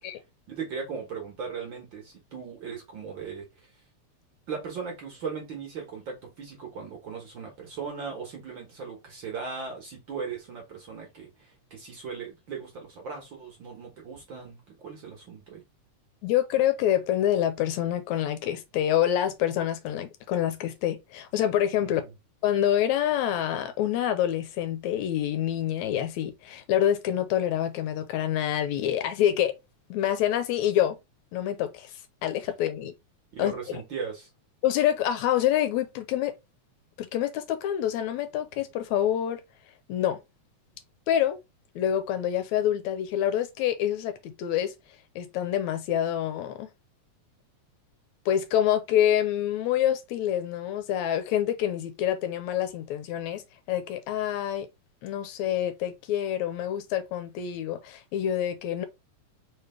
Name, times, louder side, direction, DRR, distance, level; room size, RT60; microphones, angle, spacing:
voice 1, 0.5-3.5 4.5-15.6 21.8-22.0 33.3-34.3, right 5 dB, 50° right, 1.6 m, -38 dB
voice 2, 16.2-22.0 22.4-29.5 29.9-31.0 31.3-32.9 33.4-33.5 34.6-36.3 37.0-39.4 39.9-40.2 41.1-41.4 41.8-44.7 45.2-46.7 48.3-53.4 53.7-54.7 55.0-58.9, left 11 dB, 80° left, 1.9 m, -26 dB
4.4 x 3.3 x 3.2 m
omnidirectional pair, 3.3 m